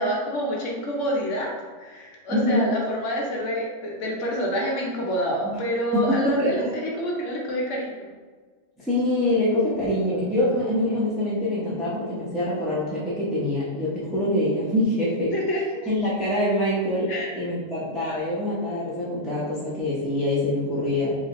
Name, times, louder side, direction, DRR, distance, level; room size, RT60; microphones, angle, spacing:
voice 1, 0.0-1.5 1.8-8.1 15.3-15.8 17.1-17.3, equal, 70° left, -2 dB, 1.1 m, -27 dB
voice 2, 2.3-2.7 5.5-5.6 5.9-6.7 8.8-15.3 15.9-17.1 17.4-21.1, left 1 dB, ahead, -10 dB, 0.7 m, -25 dB
4.6 x 2.3 x 2.9 m, 1.4 s
omnidirectional pair, 1.3 m